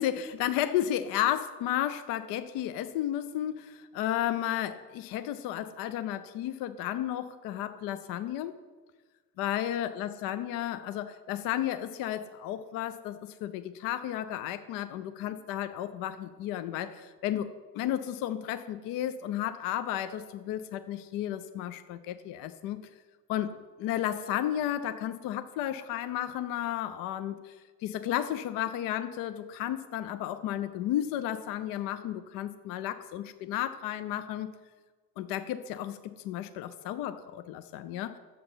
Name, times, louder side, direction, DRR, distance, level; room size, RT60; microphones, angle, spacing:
voice 1, 0.0-8.6 9.4-22.8 23.3-27.6 27.8-34.5 35.2-38.2, left 11 dB, 45° left, 11 dB, 0.5 m, -33 dB
6.7 x 5.1 x 5.7 m, 1.4 s
figure-of-eight pair, 55°, 50 cm